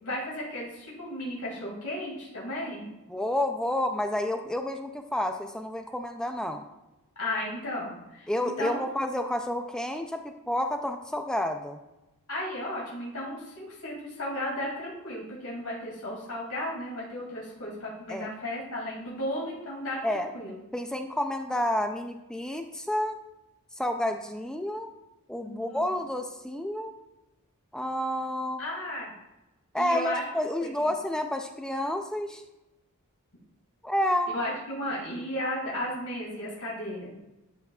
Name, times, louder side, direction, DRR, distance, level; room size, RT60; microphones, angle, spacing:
voice 1, 0.0-2.9 7.2-8.8 12.3-20.5 25.4-25.8 28.6-29.1 29.7-30.2 30.8-30.9 34.3-37.2, left 1 dB, 85° left, -4 dB, 2.4 m, -34 dB
voice 2, 3.1-6.6 8.3-11.8 18.1-18.3 20.0-20.3 20.7-23.2 23.8-24.9 25.3-26.9 27.7-28.6 29.7-32.4 33.8-34.3, left 1 dB, 5° left, 5 dB, 0.3 m, -30 dB
11.5 x 5.6 x 2.3 m, 0.98 s
head